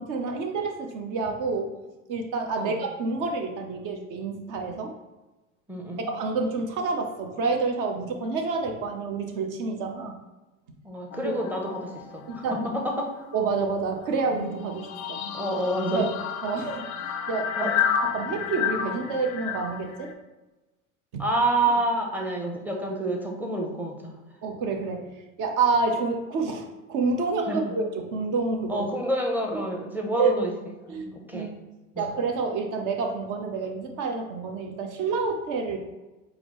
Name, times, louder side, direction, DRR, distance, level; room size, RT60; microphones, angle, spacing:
voice 1, 0.0-1.7 2.1-5.0 6.1-10.1 11.2-11.3 12.3-12.6 13.3-15.2 15.9-16.1 16.4-16.9 17.3-17.7 18.0-20.1 21.1-21.2 24.4-25.1 25.4-28.9 30.2-30.3 30.9-31.1 31.3-31.5 32.0-35.8, right 4 dB, 50° right, 4 dB, 0.8 m, -28 dB
voice 2, 5.7-6.1 10.8-13.1 15.3-16.1 17.6-17.7 21.2-24.1 27.5-27.7 28.7-30.5 30.8-31.5 31.9-32.1, right 1 dB, 5° right, 0 dB, 0.7 m, -28 dB
sound 1, 11.1-12.9 13.2-20.1, left 7 dB, 40° left, 0.4 m, -32 dB
4.4 x 2.0 x 3.8 m, 1.1 s
hypercardioid pair, 85°, 42 cm